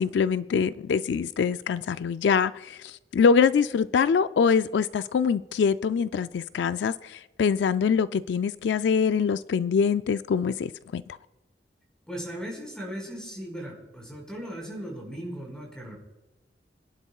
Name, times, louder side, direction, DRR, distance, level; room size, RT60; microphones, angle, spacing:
voice 1, 0.0-11.0, left 6 dB, 80° left, 0.3 m, -24 dB
voice 2, 12.1-16.0, equal, 5° left, 4.9 m, -37 dB
26.5 x 11.0 x 2.4 m
head